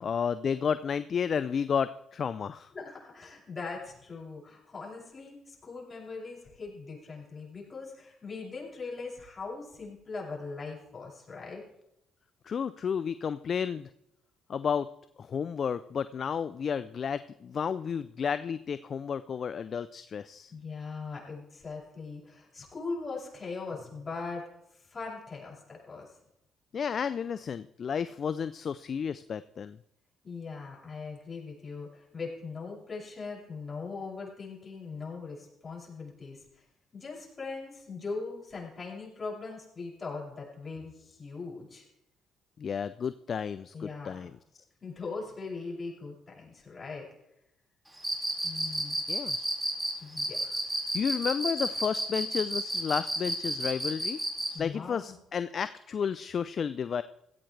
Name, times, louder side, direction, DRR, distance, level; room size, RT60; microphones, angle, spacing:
voice 1, 0.0-2.7 12.5-13.9 14.5-14.9 15.2-20.5 26.7-29.8 42.6-44.3 49.1-49.4 50.9-54.2 54.6-57.0, left 7 dB, 55° left, 14 dB, 0.4 m, -32 dB
voice 2, 2.7-11.6 20.5-26.1 30.2-36.6 36.9-41.8 43.7-44.3 44.8-47.0 48.4-49.0 50.0-50.7 54.5-55.1, left 4 dB, 35° left, -3 dB, 6.8 m, -40 dB
Cricket, 48.0-54.6, right 1 dB, 10° right, 4.9 m, -31 dB
16.5 x 15.0 x 3.3 m, 0.81 s
hypercardioid pair, 55°, 0 cm